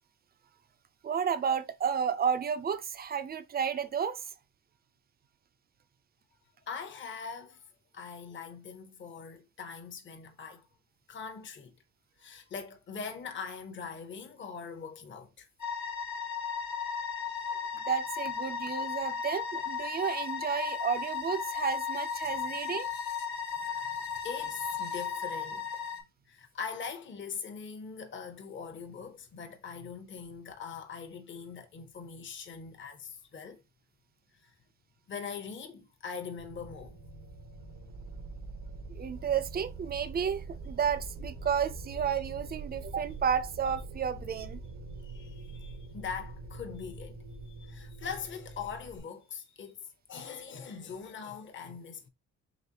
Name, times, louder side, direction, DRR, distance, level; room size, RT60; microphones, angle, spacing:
voice 1, 1.0-4.3 17.7-22.9 38.9-44.6, right 7 dB, 30° right, 0.4 m, -32 dB
voice 2, 6.6-7.7 7.9-10.7 11.1-11.7 12.2-15.5 22.3-22.4 23.5-33.6 34.4-34.5 35.1-37.0 45.0-52.1, left 6 dB, 40° left, 0.8 m, -42 dB
sound 1, 15.6-26.0, left 6 dB, 65° left, 1.0 m, -35 dB
sound 2, 36.4-49.0, right 3 dB, 90° right, 1.0 m, -44 dB
4.0 x 3.0 x 2.8 m
cardioid pair, 90°, 30 cm